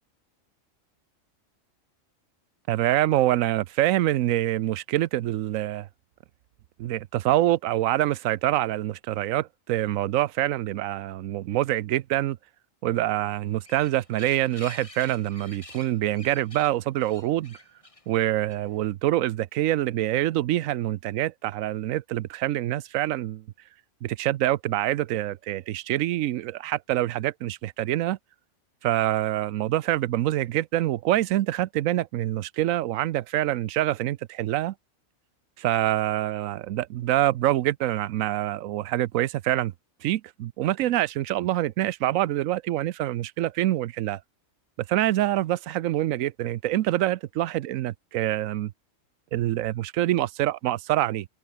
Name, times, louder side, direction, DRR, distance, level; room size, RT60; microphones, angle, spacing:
voice 1, 2.7-5.9 6.8-12.4 12.8-17.6 18.1-23.4 24.0-28.2 28.8-34.7 35.6-39.7 40.0-44.2 44.9-48.7 49.3-51.3, right 14 dB, 85° right, 1.0 m, -25 dB
sound 1, 13.5-18.8, left 2 dB, 25° left, 2.3 m, -49 dB
open air
omnidirectional pair, 1.4 m